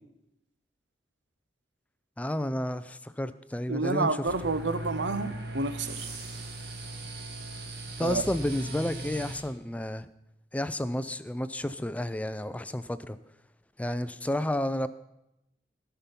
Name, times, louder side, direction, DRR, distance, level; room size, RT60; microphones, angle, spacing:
voice 1, 2.2-4.3 8.0-10.1 10.5-13.2 13.8-14.9, left 1 dB, 10° left, 14 dB, 0.3 m, -31 dB
voice 2, 3.7-6.1 8.0-8.2, right 3 dB, 75° right, 11 dB, 0.8 m, -29 dB
sound 1, 4.3-9.4, right 2 dB, 60° right, 1.7 m, -38 dB
17.0 x 5.7 x 5.3 m, 0.88 s
head